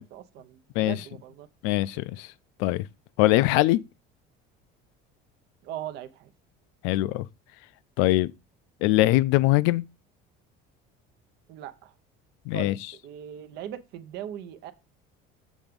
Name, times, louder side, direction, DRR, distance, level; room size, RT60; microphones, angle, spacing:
voice 1, 0.1-1.5 5.6-6.3 11.5-11.9 12.5-14.7, right 11 dB, 55° right, 0.8 m, -39 dB
voice 2, 1.6-2.3 2.6-2.9 3.2-3.8 6.8-7.3 8.0-8.3 8.8-9.8 12.5-12.7, left 17 dB, 80° left, 0.4 m, -22 dB
7.2 x 3.5 x 5.1 m
cardioid pair, 165°, 20 cm